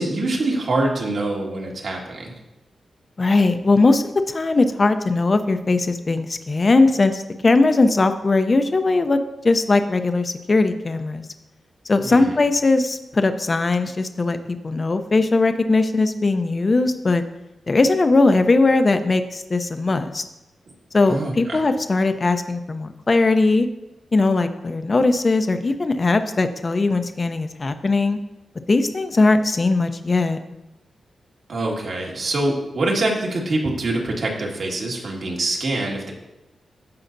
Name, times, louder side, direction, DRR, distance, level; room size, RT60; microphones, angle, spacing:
voice 1, 0.0-2.3 12.0-12.4 21.1-21.6 31.5-36.1, right 2 dB, 60° right, -1 dB, 1.8 m, -24 dB
voice 2, 3.2-9.2 9.4-11.2 11.9-17.2 17.7-20.2 20.9-23.7 24.1-28.2 28.7-30.4, left 3 dB, 30° left, 9 dB, 0.6 m, -19 dB
15.0 x 5.5 x 2.6 m, 0.95 s
wide cardioid pair, 130°, 0 cm